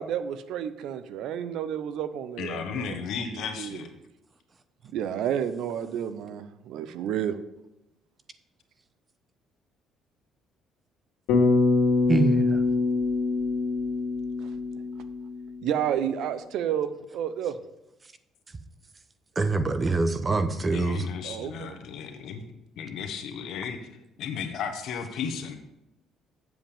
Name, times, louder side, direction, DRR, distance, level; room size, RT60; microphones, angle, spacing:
voice 1, 0.0-3.0 3.2-3.8 4.9-7.4 14.4-14.5 15.6-17.6 21.2-21.8, right 9 dB, 75° right, 12 dB, 0.7 m, -31 dB
voice 2, 2.4-3.9 20.6-22.4 22.8-23.8 24.2-25.5, left 6 dB, 70° left, 6 dB, 1.3 m, -34 dB
Bass guitar, 11.3-15.7, left 3 dB, 90° left, 2.0 m, -24 dB
voice 3, 12.1-12.6 19.4-21.1, right 3 dB, 30° right, 11 dB, 0.8 m, -25 dB
7.9 x 7.4 x 5.1 m, 0.92 s
cardioid pair, 95°, 0 cm